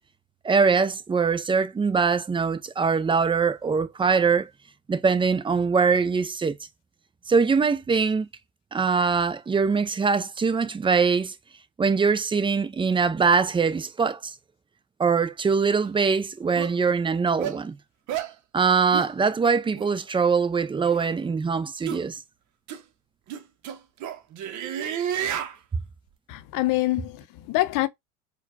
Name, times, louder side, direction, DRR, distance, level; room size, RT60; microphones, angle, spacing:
voice 1, 0.4-4.5 4.9-6.5 7.3-8.3 8.7-11.3 11.8-14.3 15.0-17.8 18.5-22.2, right 5 dB, 15° right, 0.5 m, -22 dB
sound 1, 15.8-15.9 16.6-16.7 17.4-17.6 18.1-18.3 18.9-19.1 19.7-19.9 20.8-21.1 21.8-22.0 22.7-22.8 23.3-25.6, right 9 dB, 45° right, 0.8 m, -31 dB
voice 2, 26.3-27.9, left 18 dB, 55° left, 0.6 m, -25 dB
4.4 x 2.3 x 2.2 m
hypercardioid pair, 70°, 40 cm